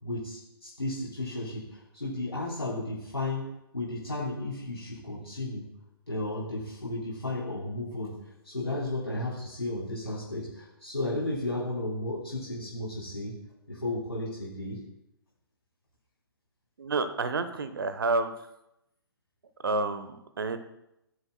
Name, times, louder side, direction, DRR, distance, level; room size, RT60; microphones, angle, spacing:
voice 1, 0.0-3.5 3.7-5.7 6.1-8.1 8.4-13.4 13.7-14.8, left 2 dB, 85° left, -8 dB, 3.5 m, -34 dB
voice 2, 16.8-18.3 19.6-20.6, right 3 dB, 60° right, 11 dB, 0.9 m, -29 dB
17.5 x 7.2 x 2.2 m, 0.84 s
figure-of-eight pair, 130°, 13 cm